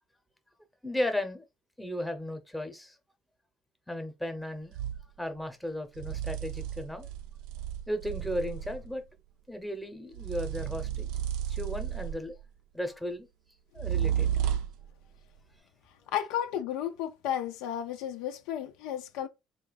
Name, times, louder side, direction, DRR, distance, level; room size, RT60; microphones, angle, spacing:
voice 1, 0.8-1.4 1.8-2.9 3.9-4.8 5.2-7.1 7.9-9.0 9.5-11.1 11.5-12.3 12.7-13.3 13.7-14.3, left 1 dB, 5° left, 0.8 m, -35 dB
sound 1, 4.7-5.1 6.0-8.9 10.2-12.4 13.8-14.9, right 10 dB, 85° right, 0.4 m, -33 dB
voice 2, 16.1-19.3, left 10 dB, 90° left, 0.6 m, -33 dB
3.7 x 2.5 x 3.9 m
cardioid pair, 110°, 0 cm